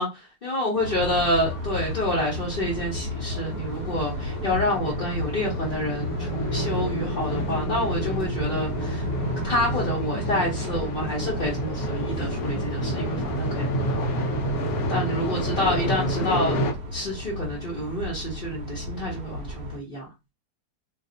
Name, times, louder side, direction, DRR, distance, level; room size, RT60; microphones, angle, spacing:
voice 1, 0.0-9.1 9.4-14.3 14.9-16.6 16.9-20.1, left 1 dB, 35° left, -6 dB, 1.0 m, -28 dB
sound 1, 0.8-16.7, right 1 dB, 70° left, 1.2 m, -30 dB
sound 2, 0.8-19.8, left 2 dB, 55° right, 0.6 m, -34 dB
2.6 x 2.6 x 3.8 m, 0.25 s
omnidirectional pair, 1.7 m